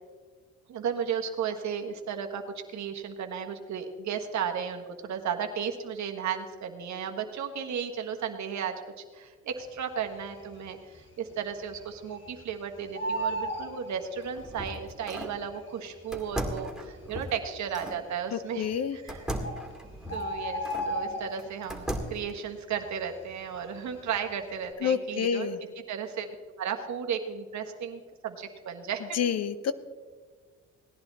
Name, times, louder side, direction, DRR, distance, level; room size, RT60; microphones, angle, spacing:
voice 1, 0.7-19.2 20.1-25.5 25.9-26.3 26.6-29.2, right 7 dB, 65° right, 5 dB, 1.4 m, -34 dB
Bird, 10.0-10.6 11.0-11.1 11.3-12.5 12.8-14.6 15.5-15.6 16.2-16.3 16.5-16.6 17.2-17.7 18.7-18.8 19.1-19.2 19.4-21.7 22.1-22.4 22.7-24.1 24.4-24.7, right 1 dB, 40° left, 2.4 m, -34 dB
sound 1, 14.0-15.4 16.1-18.0 19.1-20.9 21.4-22.3, equal, ahead, 2.1 m, -37 dB
voice 2, 18.3-19.0 24.8-25.6 29.1-29.7, left 7 dB, 55° left, 14 dB, 0.8 m, -28 dB
17.5 x 10.5 x 4.1 m, 1.5 s
cardioid pair, 90°, 30 cm